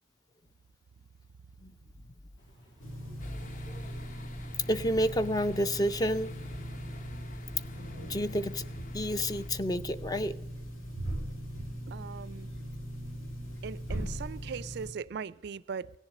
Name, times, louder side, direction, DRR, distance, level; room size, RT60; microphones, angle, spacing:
sound 1, 2.4-8.4, equal, 65° left, 3.2 m, -57 dB
sound 2, 2.8-14.9, equal, 90° left, 2.3 m, -40 dB
sound 3, 3.2-9.5, left 1 dB, 40° left, 0.8 m, -48 dB
voice 1, 4.7-6.3 8.1-8.6 8.9-10.4, equal, 20° left, 0.4 m, -29 dB
voice 2, 11.9-12.5 13.6-15.9, right 6 dB, 55° right, 0.3 m, -39 dB
16.5 x 7.3 x 6.5 m
head